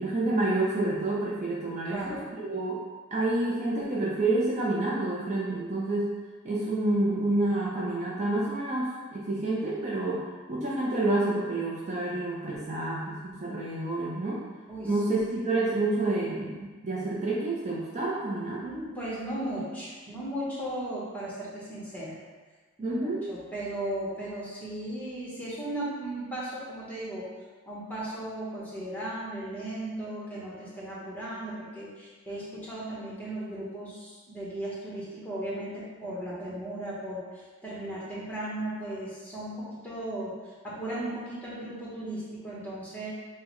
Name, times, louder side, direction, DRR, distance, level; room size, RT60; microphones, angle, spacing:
voice 1, 0.0-2.2 2.4-2.8 3.1-6.1 6.4-10.2 10.5-14.4 14.8-18.6 22.8-23.2, right 2 dB, 30° right, -6 dB, 0.5 m, -28 dB
voice 2, 1.9-2.3 14.7-15.2 18.6-22.2 22.8-27.3 27.7-43.1, right 1 dB, 5° left, -8 dB, 0.9 m, -36 dB
5.5 x 2.1 x 3.0 m, 1.3 s
head